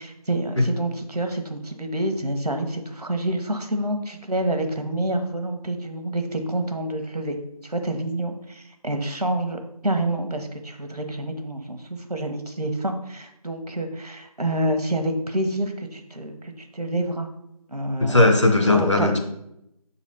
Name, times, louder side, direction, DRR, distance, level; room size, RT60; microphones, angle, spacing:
voice 1, 0.0-7.4 7.6-17.3 17.7-18.3 18.6-19.2, right 1 dB, 85° right, 5 dB, 1.1 m, -28 dB
voice 2, 18.0-19.2, left 2 dB, 50° left, 4 dB, 0.8 m, -18 dB
4.9 x 4.0 x 5.4 m, 0.81 s
figure-of-eight pair, 175°, 20 cm